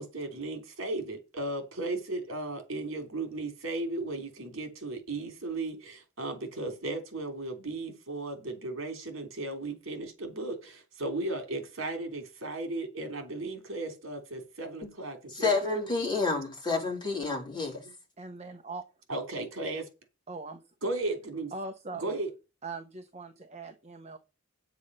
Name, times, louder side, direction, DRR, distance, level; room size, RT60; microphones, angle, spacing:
voice 1, 0.0-16.4 19.1-19.8 20.8-21.5 21.9-22.3, right 2 dB, 70° right, 3.3 m, -35 dB
voice 2, 15.3-17.8, left 4 dB, 20° left, 4.1 m, -29 dB
voice 3, 18.2-18.8 20.3-20.6 21.5-22.2 22.6-24.2, right 3 dB, 35° right, 1.0 m, -41 dB
9.0 x 8.3 x 5.5 m
head